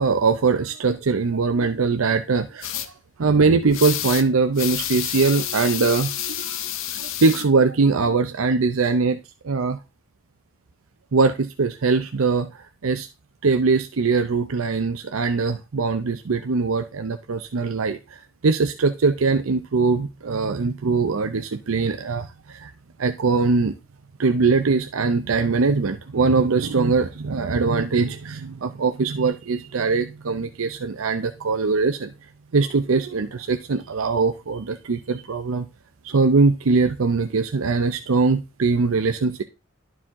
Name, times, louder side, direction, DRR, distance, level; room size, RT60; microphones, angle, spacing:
voice 1, 0.0-2.9 3.2-6.6 6.9-9.2 9.4-9.8 11.1-13.1 13.4-22.7 23.0-23.7 24.2-32.1 32.5-35.7 36.0-39.4, right 4 dB, 90° right, 8 dB, 0.6 m, -22 dB
sound 1, 2.6-2.9 3.7-4.3 4.6-7.4, left 11 dB, 70° left, 0.7 m, -29 dB
11.5 x 4.9 x 3.6 m, 0.28 s
head